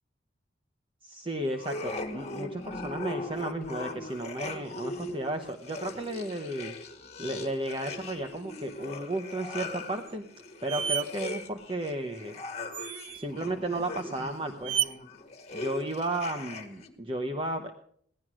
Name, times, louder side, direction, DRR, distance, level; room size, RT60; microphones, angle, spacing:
voice 1, 1.0-6.7 7.2-10.3 10.6-12.4 13.1-14.8 15.5-17.7, right 1 dB, 30° right, 4 dB, 1.0 m, -33 dB
sound 1, 1.5-16.9, left 2 dB, 35° left, 1.9 m, -40 dB
sound 2, 10.1-10.2 10.7-11.1 12.7-13.3 14.6-14.9, right 9 dB, 85° right, 0.6 m, -30 dB
17.5 x 11.5 x 6.2 m, 0.65 s
head